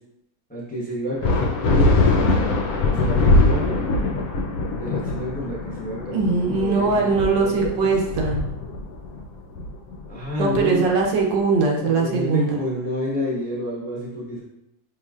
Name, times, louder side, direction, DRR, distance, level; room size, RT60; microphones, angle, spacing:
voice 1, 0.5-2.6 2.9-3.8 4.8-7.8 10.1-10.9 11.8-14.4, left 1 dB, 5° left, -6 dB, 0.7 m, -29 dB
sound 1, 1.2-11.2, left 2 dB, 70° left, 0.9 m, -22 dB
voice 2, 6.1-8.5 10.4-12.5, right 4 dB, 75° right, -1 dB, 1.4 m, -21 dB
5.4 x 3.1 x 2.4 m, 0.87 s
omnidirectional pair, 2.0 m